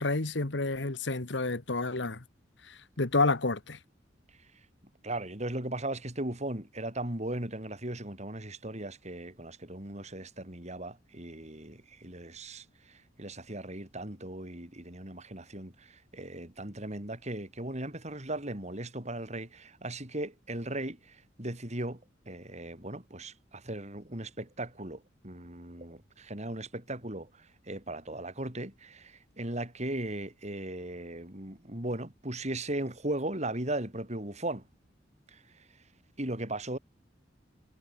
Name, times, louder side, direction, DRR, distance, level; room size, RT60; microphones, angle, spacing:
voice 1, 0.0-2.2 2.7-3.8, left 3 dB, 65° left, 1.6 m, -29 dB
voice 2, 5.0-22.0 22.3-34.6 35.3-35.4 36.2-36.8, right 1 dB, 35° right, 4.8 m, -37 dB
head